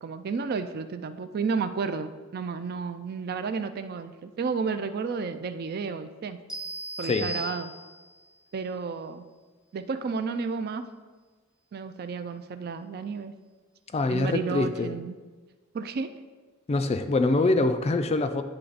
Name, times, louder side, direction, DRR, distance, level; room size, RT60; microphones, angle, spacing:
voice 1, 0.0-6.4 7.0-7.7 8.5-9.3 9.7-10.8 11.7-13.3 14.1-15.2 15.7-16.1, right 5 dB, 45° right, 10 dB, 0.3 m, -32 dB
sound 1, 6.5-8.2, equal, 5° right, 0.7 m, -37 dB
voice 2, 13.9-14.9 16.7-18.4, left 2 dB, 30° left, 9 dB, 0.3 m, -24 dB
9.9 x 3.3 x 4.0 m, 1.3 s
head